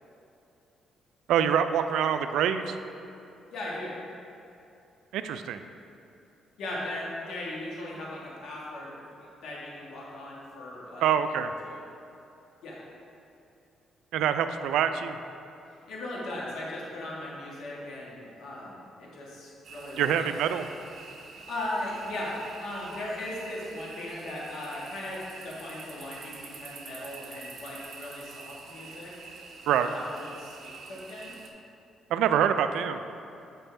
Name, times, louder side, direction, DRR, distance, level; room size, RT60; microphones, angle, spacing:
voice 1, 1.3-2.7 5.1-5.6 11.0-11.5 14.1-15.2 20.0-20.7 29.7-29.9 32.1-33.0, right 9 dB, 85° right, 9 dB, 0.3 m, -25 dB
voice 2, 3.5-3.9 6.6-8.9 9.2-11.0 11.3-11.8 12.6-12.8 15.9-20.3 21.5-25.2 25.4-29.1 29.8-31.3, left 1 dB, 80° left, -5 dB, 1.4 m, -38 dB
sound 1, 19.6-31.5, right 4 dB, 60° right, 1.0 m, -46 dB
8.0 x 6.1 x 3.3 m, 2.7 s
cardioid pair, 90°, 0 cm